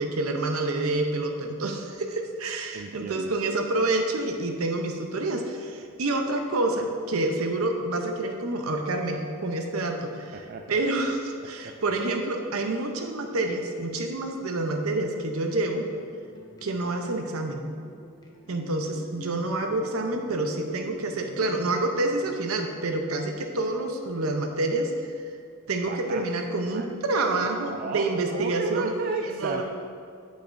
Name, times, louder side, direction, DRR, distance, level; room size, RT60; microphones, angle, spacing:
voice 1, 0.0-15.8 16.6-17.7 18.5-25.1 25.7-28.9 29.2-29.6, right 2 dB, 80° right, 4 dB, 0.7 m, -28 dB
voice 2, 2.7-3.6 10.3-10.8 11.6-11.8 25.9-26.2 26.7-26.9 27.5-29.6, right 3 dB, 45° right, 4 dB, 0.3 m, -34 dB
sound 1, 15.6-22.7, right 1 dB, 20° left, 0.6 m, -48 dB
8.3 x 8.1 x 2.6 m, 2.3 s
head